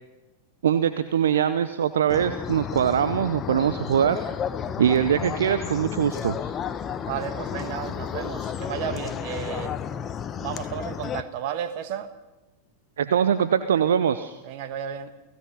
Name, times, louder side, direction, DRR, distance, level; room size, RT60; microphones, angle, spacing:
voice 1, 0.6-4.2 4.8-6.5 13.0-14.4, right 8 dB, 65° right, 12 dB, 0.8 m, -22 dB
sound 1, 2.1-11.2, left 8 dB, 25° left, 1.0 m, -32 dB
voice 2, 7.0-9.7 10.4-12.1 14.4-15.1, right 9 dB, 45° right, 11 dB, 1.5 m, -33 dB
29.0 x 17.5 x 5.5 m, 1.0 s
figure-of-eight pair, 90°, 0 cm